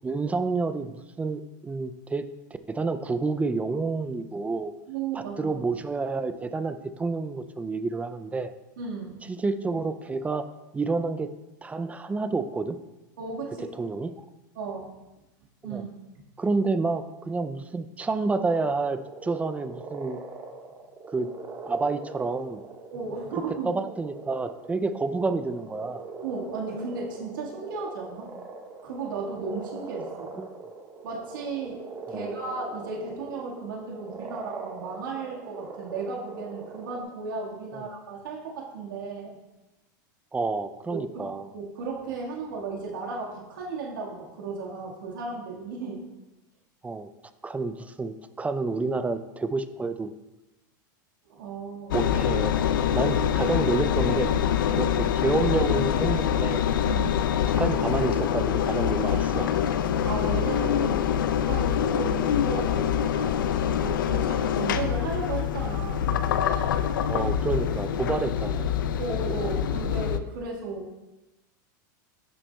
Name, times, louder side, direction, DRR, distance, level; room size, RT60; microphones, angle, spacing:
voice 1, 0.0-2.3 2.7-4.7 5.1-8.5 9.3-11.3 11.6-12.8 13.8-14.1 15.6-15.8 16.4-20.2 21.1-21.3 21.6-22.6 23.6-26.1 30.4-30.5 32.1-32.3 37.7-37.8 40.3-41.5 46.8-47.1 47.4-50.1 51.9-52.6 52.9-54.3 54.7-56.6 57.6-59.5 67.1-68.7, right 3 dB, 15° right, 11 dB, 0.5 m, -29 dB
voice 2, 4.9-5.5 8.8-9.2 13.2-13.7 14.5-15.0 15.6-15.9 22.9-23.7 26.2-28.3 28.8-30.3 31.0-31.8 32.1-39.4 40.9-46.0 51.2-51.9 54.6-54.9 56.9-57.3 60.0-66.1 69.0-71.1, right 4 dB, 85° right, -3 dB, 1.8 m, -35 dB
sound 1, 18.5-37.0, right 3 dB, 35° right, 1.5 m, -42 dB
Engine, 51.9-70.2, left 9 dB, 85° left, 0.5 m, -25 dB
10.5 x 7.1 x 2.3 m, 1.0 s
hypercardioid pair, 115°, 11 cm